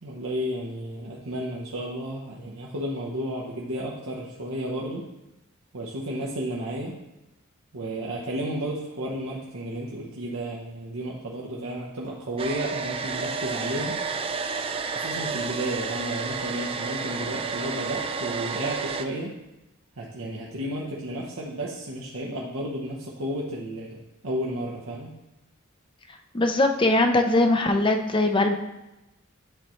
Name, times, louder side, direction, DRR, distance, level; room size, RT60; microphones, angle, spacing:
voice 1, 0.0-5.1 5.7-7.0 7.7-14.0 14.9-19.4 20.0-25.2, right 1 dB, 90° right, -4 dB, 1.0 m, -32 dB
Domestic sounds home sounds, 12.4-19.0, right 5 dB, 25° right, 0.3 m, -31 dB
voice 2, 26.3-28.5, left 2 dB, 25° left, 5 dB, 0.5 m, -21 dB
10.5 x 4.4 x 3.1 m, 0.96 s
head